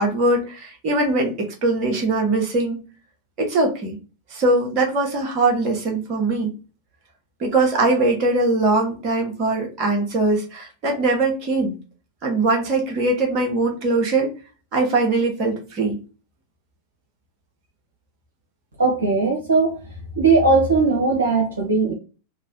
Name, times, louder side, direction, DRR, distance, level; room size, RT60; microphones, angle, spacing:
voice 1, 0.0-2.8 3.4-4.0 4.3-6.5 7.4-11.8 12.2-14.3 14.7-16.0, right 2 dB, 40° right, 1 dB, 1.0 m, -21 dB
voice 2, 18.8-19.8 20.1-21.9, right 3 dB, 70° right, 0 dB, 0.8 m, -18 dB
3.0 x 2.2 x 2.7 m, 0.34 s
figure-of-eight pair, 90°, 0 cm